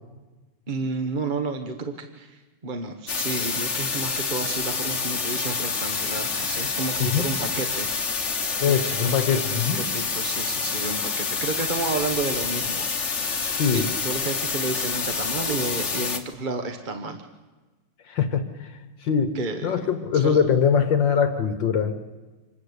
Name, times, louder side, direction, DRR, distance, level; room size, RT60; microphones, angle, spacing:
voice 1, 0.7-7.9 8.6-12.9 13.4-17.2 19.3-19.7 20.2-20.4, right 3 dB, 30° right, 6 dB, 1.1 m, -31 dB
sound 1, 3.1-16.2, left 5 dB, 35° left, 1.7 m, -27 dB
voice 2, 8.6-9.8 13.5-13.9 18.1-19.3 19.6-21.9, left 7 dB, 65° left, 9 dB, 1.8 m, -23 dB
26.5 x 20.5 x 8.2 m, 1.2 s
omnidirectional pair, 2.3 m